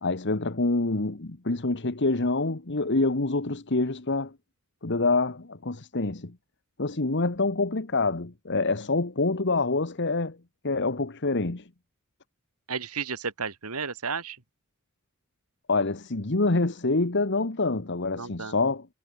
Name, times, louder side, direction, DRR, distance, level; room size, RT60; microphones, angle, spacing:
voice 1, 0.0-4.3 4.8-6.4 6.8-10.4 10.6-11.6 15.7-18.9, left 3 dB, 55° left, 1.4 m, -26 dB
voice 2, 12.7-14.4 18.2-18.6, right 5 dB, 90° right, 2.5 m, -33 dB
head